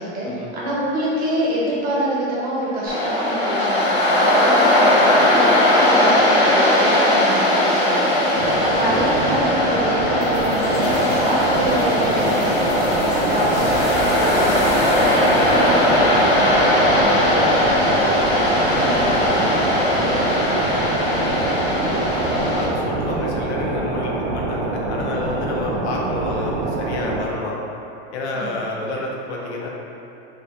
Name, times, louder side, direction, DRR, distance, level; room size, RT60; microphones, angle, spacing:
voice 1, 0.0-14.7 15.1-18.0 18.4-20.7 25.7-25.8 28.3-28.5, right 1 dB, 30° right, -7 dB, 0.8 m, -27 dB
Waves surf, 2.9-22.7, left 1 dB, 20° left, 0.3 m, -18 dB
sound 1, 8.3-27.3, right 3 dB, 50° right, 0.4 m, -26 dB
sound 2, 10.2-16.8, left 1 dB, 50° left, 1.0 m, -36 dB
voice 2, 22.1-27.6 28.1-29.7, left 2 dB, 90° left, -2 dB, 0.8 m, -29 dB
3.3 x 2.4 x 3.8 m, 2.8 s
supercardioid pair, 160°, 32 cm